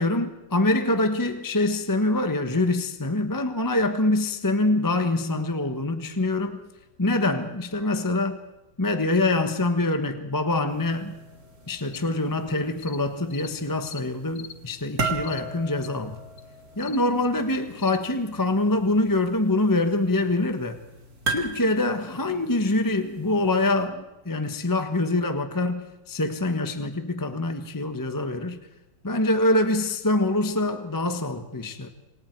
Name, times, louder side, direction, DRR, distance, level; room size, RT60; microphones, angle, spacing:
voice 1, 0.0-6.6 7.0-8.4 8.8-11.2 11.7-16.2 16.8-20.8 21.3-28.6 29.0-31.9, left 2 dB, 15° left, 7 dB, 1.1 m, -25 dB
sound 1, 10.7-23.9, right 3 dB, 50° right, 3.4 m, -38 dB
sound 2, 11.9-12.0 12.8-13.0 13.3-13.5 13.8-14.0 14.4-14.6 15.2-15.4 15.8-15.9 16.4-16.5 16.8-17.0 17.8-18.0, left 8 dB, 85° left, 1.9 m, -42 dB
28.0 x 26.0 x 4.7 m, 1.0 s
omnidirectional pair, 2.0 m